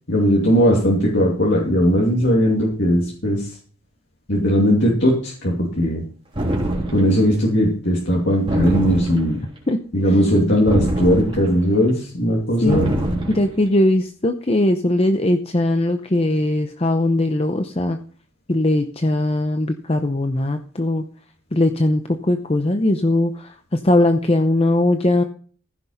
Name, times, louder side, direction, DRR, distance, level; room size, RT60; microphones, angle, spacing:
voice 1, 0.1-3.6 4.3-6.0 6.9-9.4 9.9-13.0, equal, 55° left, -3 dB, 2.7 m, -18 dB
sound 1, 6.3-7.2 8.5-9.4 10.7-11.7 12.7-13.5, right 1 dB, 25° right, 3.4 m, -24 dB
voice 2, 13.3-18.0 18.5-21.0 21.5-25.2, left 1 dB, 25° left, 7 dB, 0.7 m, -19 dB
15.0 x 6.1 x 5.7 m, 0.43 s
head